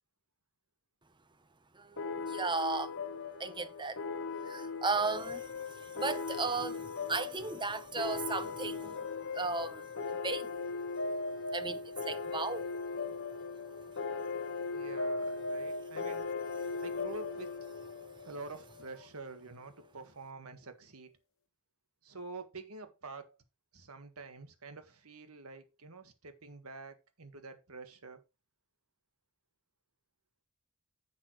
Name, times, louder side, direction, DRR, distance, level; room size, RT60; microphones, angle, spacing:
voice 1, 1.7-2.9 3.4-4.0 4.4-9.1 9.3-10.6 11.5-12.7 16.6-16.7, right 4 dB, 20° right, 0.8 m, -36 dB
sound 1, 2.0-19.1, left 4 dB, 65° left, 1.0 m, -38 dB
voice 2, 14.7-16.2 16.8-17.7 18.2-21.1 22.0-23.4 23.7-28.2, right 3 dB, 80° right, 1.7 m, -47 dB
10.5 x 7.4 x 3.2 m
head